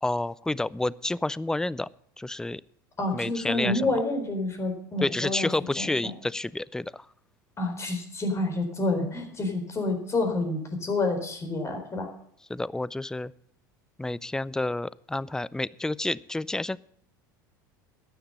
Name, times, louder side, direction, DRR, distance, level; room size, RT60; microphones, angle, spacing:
voice 1, 0.0-1.9 2.2-2.6 3.1-3.8 5.0-7.0 12.5-13.3 14.0-16.8, left 2 dB, 5° left, 22 dB, 0.4 m, -29 dB
voice 2, 3.0-5.5 5.8-6.1 7.6-12.1, left 2 dB, 25° left, 5 dB, 4.2 m, -28 dB
12.5 x 10.5 x 5.4 m, 0.68 s
hypercardioid pair, 80°, 11 cm